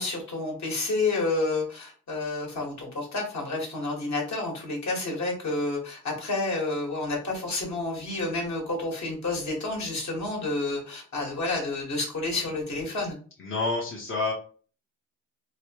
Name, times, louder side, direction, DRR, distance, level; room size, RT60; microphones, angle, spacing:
voice 1, 0.0-13.2, left 2 dB, 50° left, -1 dB, 1.5 m, -30 dB
voice 2, 13.4-14.3, left 3 dB, 35° left, -4 dB, 0.9 m, -28 dB
3.1 x 2.2 x 2.9 m, 0.42 s
cardioid pair, 75°, 35 cm